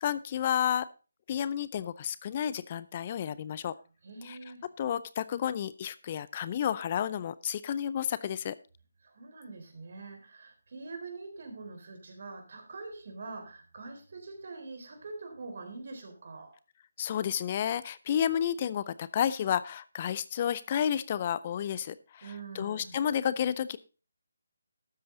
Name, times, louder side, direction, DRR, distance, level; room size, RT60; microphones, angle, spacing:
voice 1, 0.0-0.9 1.3-3.7 4.2-4.4 4.8-8.6 17.0-22.3 22.5-23.8, left 9 dB, 35° left, 17 dB, 0.5 m, -31 dB
voice 2, 4.0-4.7 9.0-16.5 22.2-23.0, right 3 dB, 55° right, 5 dB, 3.9 m, -44 dB
12.5 x 8.7 x 3.8 m, 0.33 s
figure-of-eight pair, 155°, 0 cm